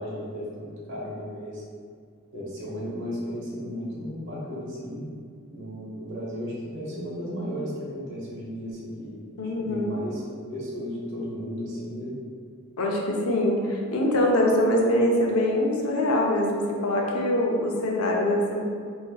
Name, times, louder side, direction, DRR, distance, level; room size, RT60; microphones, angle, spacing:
voice 1, 0.0-1.6 2.3-5.1 5.5-9.2 9.6-10.2 10.5-12.1, equal, 60° right, -6 dB, 1.0 m, -34 dB
voice 2, 9.4-9.9 12.8-18.6, left 1 dB, 85° left, -1 dB, 0.6 m, -23 dB
4.1 x 2.8 x 2.3 m, 2.1 s
head